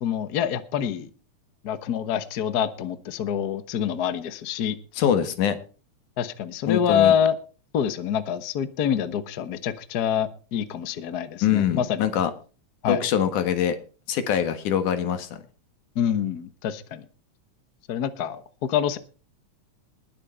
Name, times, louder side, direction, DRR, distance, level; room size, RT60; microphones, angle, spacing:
voice 1, 0.0-1.1 1.6-5.0 6.2-7.3 7.7-12.0 12.8-13.0 15.9-17.0 17.9-19.0, left 9 dB, 60° left, 12 dB, 1.0 m, -26 dB
voice 2, 5.0-5.6 6.7-7.1 11.4-12.3 12.9-13.8 14.1-15.4, left 9 dB, 85° left, 10 dB, 3.0 m, -23 dB
20.5 x 7.6 x 4.4 m, 0.37 s
omnidirectional pair, 3.4 m